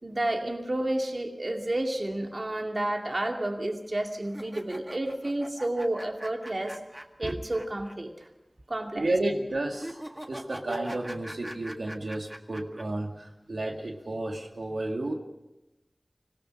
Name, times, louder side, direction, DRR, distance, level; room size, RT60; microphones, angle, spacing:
voice 1, 0.0-6.8 7.2-8.1 8.7-9.0, right 1 dB, 50° right, 3 dB, 2.5 m, -30 dB
sound 1, 4.3-7.9 8.2-8.3 9.7-12.8, right 1 dB, 20° right, 1.8 m, -43 dB
voice 2, 8.9-10.0 10.3-15.1, right 2 dB, 90° right, 1 dB, 2.2 m, -31 dB
25.5 x 17.5 x 6.4 m, 0.97 s
wide cardioid pair, 60°, 0 cm